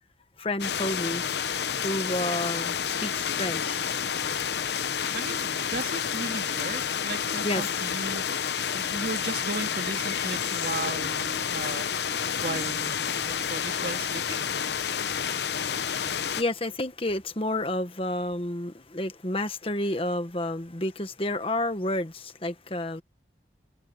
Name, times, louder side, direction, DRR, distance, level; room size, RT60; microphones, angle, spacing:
voice 1, 0.4-1.2 1.8-3.8 7.4-7.7 16.1-23.0, left 1 dB, 30° left, 1.3 m, -30 dB
sound 1, 0.6-16.4, left 7 dB, 75° left, 0.8 m, -29 dB
voice 2, 5.1-11.9 12.4-14.5, right 3 dB, 60° right, 2.1 m, -36 dB
open air
head